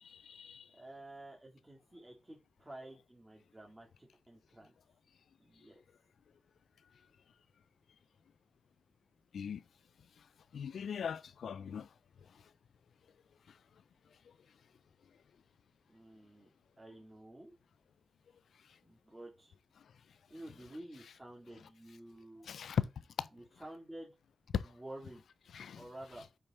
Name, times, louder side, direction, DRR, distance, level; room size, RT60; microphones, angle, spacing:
voice 1, 0.0-0.7 9.3-9.6 10.5-11.9 22.4-22.9 23.2-23.3 24.5-24.7 25.5-25.8, left 7 dB, 85° left, 0.3 m, -38 dB
voice 2, 0.7-4.7 5.4-5.8 15.9-16.5 16.8-17.5 18.8-19.5 20.3-22.5 23.3-24.1 24.6-25.2 25.7-26.2, right 1 dB, 20° right, 2.2 m, -51 dB
5.5 x 4.8 x 4.2 m
cardioid pair, 45°, 0 cm